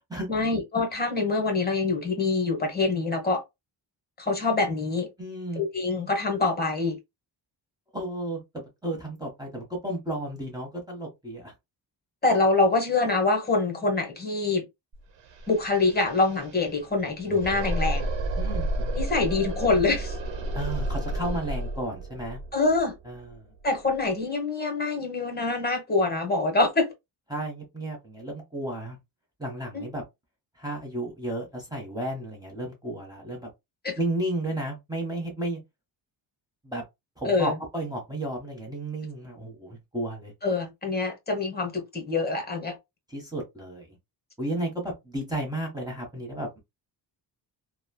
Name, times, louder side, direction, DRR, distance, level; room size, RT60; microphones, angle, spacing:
voice 1, 0.3-3.4 4.2-5.1 5.6-7.0 12.2-14.6 15.5-18.1 18.9-20.2 22.5-22.9 23.6-26.9 29.7-29.8 33.8-34.0 37.2-37.5 40.4-42.7, left 3 dB, 20° left, 1.0 m, -25 dB
voice 2, 5.2-5.6 7.9-11.5 18.4-19.0 20.5-22.4 23.0-23.5 27.3-29.0 29.4-30.0 30.6-33.5 34.0-35.6 36.6-36.8 37.2-40.3 43.1-44.0 44.4-46.6, right 1 dB, 10° right, 1.0 m, -33 dB
sound 1, 14.9-15.0 15.2-24.0, right 1 dB, 80° right, 1.0 m, -31 dB
3.1 x 2.2 x 2.2 m
cardioid pair, 125°, 43 cm